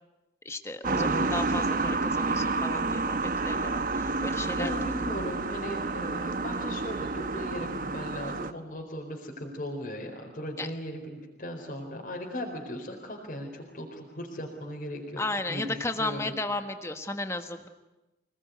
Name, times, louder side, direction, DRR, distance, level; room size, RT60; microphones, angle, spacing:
voice 1, 0.4-4.7 10.6-10.7 15.2-17.7, left 2 dB, 15° left, 7 dB, 1.4 m, -34 dB
sound 1, 0.8-8.5, right 3 dB, 50° right, 0.9 m, -29 dB
voice 2, 4.6-15.2 15.5-16.3, equal, 45° left, -1 dB, 4.4 m, -37 dB
27.0 x 19.5 x 9.5 m, 1.0 s
head